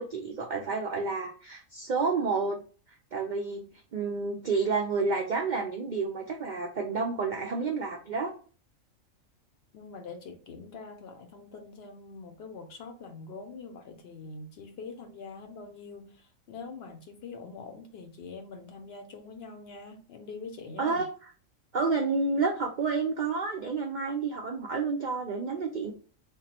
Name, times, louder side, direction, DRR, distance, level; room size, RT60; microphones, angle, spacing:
voice 1, 0.0-2.6 3.1-3.7 3.9-8.3 20.8-21.1 21.7-25.9, right 4 dB, 65° right, 0.4 m, -30 dB
voice 2, 9.7-21.0, left 4 dB, 65° left, 0.7 m, -44 dB
3.6 x 2.0 x 4.2 m
omnidirectional pair, 1.3 m